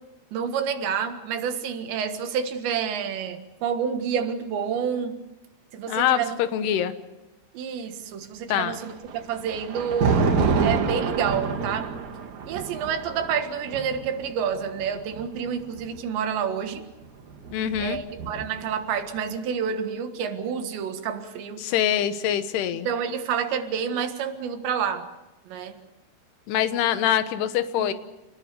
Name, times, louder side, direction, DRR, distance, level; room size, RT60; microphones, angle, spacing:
voice 1, 0.3-5.2 5.7-6.4 7.5-10.3 10.6-12.0 12.5-16.8 17.8-21.7 22.9-25.1 25.5-25.8 27.8-27.9, right 7 dB, 80° right, 3.9 m, -29 dB
voice 2, 5.9-6.9 8.5-8.8 17.5-18.0 21.6-22.9 26.5-27.9, left 10 dB, 75° left, 3.1 m, -24 dB
Thunder, 8.8-16.0 17.0-18.8, right 5 dB, 50° right, 2.6 m, -28 dB
28.5 x 20.0 x 6.8 m
omnidirectional pair, 5.0 m